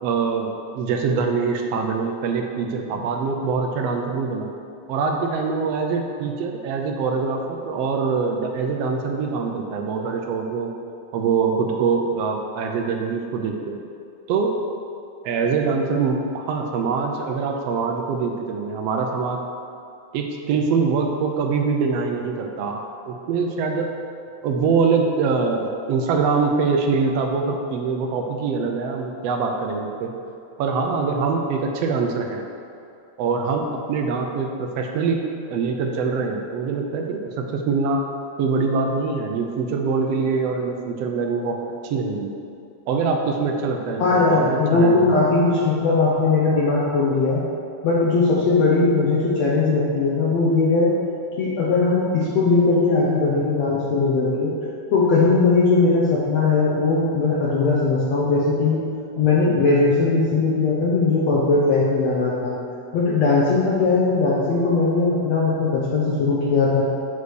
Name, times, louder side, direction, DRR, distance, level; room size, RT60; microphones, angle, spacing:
voice 1, 0.0-4.5 4.9-10.7 11.1-13.8 14.3-14.6 15.2-19.4 20.1-22.8 23.1-23.9 24.4-30.1 30.6-32.4 33.2-35.2 35.5-38.0 38.4-41.6 41.8-42.3 42.9-45.1, right 4 dB, 80° right, 3 dB, 1.5 m, -24 dB
voice 2, 44.0-47.4 47.8-50.9 51.4-54.5 54.9-58.8 59.2-62.6 62.9-66.8, left 3 dB, 65° left, -6 dB, 2.1 m, -19 dB
8.2 x 5.0 x 6.3 m, 2.6 s
omnidirectional pair, 3.5 m